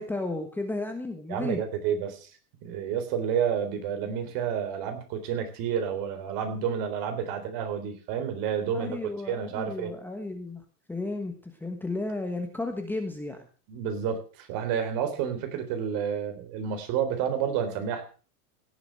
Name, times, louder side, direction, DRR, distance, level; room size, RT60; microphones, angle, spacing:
voice 1, 0.0-1.6 8.7-13.4, left 2 dB, 5° left, 4 dB, 1.2 m, -33 dB
voice 2, 1.3-2.3 2.6-9.0 9.3-9.9 13.7-18.0, right 8 dB, 45° right, 8 dB, 3.8 m, -30 dB
17.0 x 8.1 x 6.4 m, 0.38 s
supercardioid pair, 150°, 47 cm